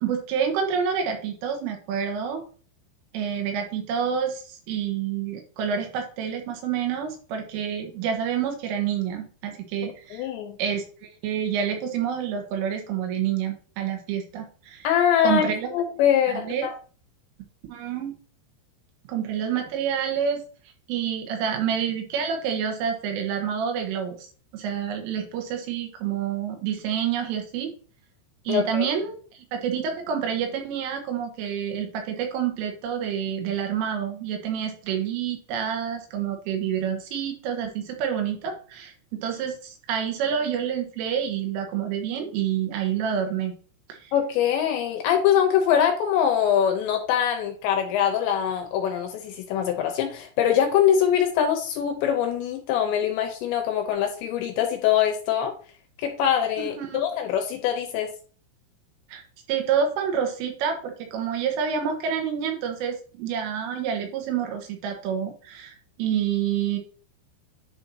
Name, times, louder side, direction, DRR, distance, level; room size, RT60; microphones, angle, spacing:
voice 1, 0.0-2.5 3.1-10.3 10.6-14.9 15.2-15.7 16.3-16.7 17.7-18.2 19.1-20.4 20.9-24.3 24.5-27.7 28.5-43.5 43.9-44.1 56.6-57.0 59.1-59.2 59.5-66.8, right 8 dB, 80° right, 4 dB, 3.8 m, -28 dB
voice 2, 10.1-10.6 14.8-15.4 15.7-16.7 28.5-28.9 44.1-55.5 56.0-58.1, left 9 dB, 75° left, 4 dB, 2.9 m, -23 dB
10.5 x 4.4 x 2.8 m, 0.40 s
omnidirectional pair, 5.7 m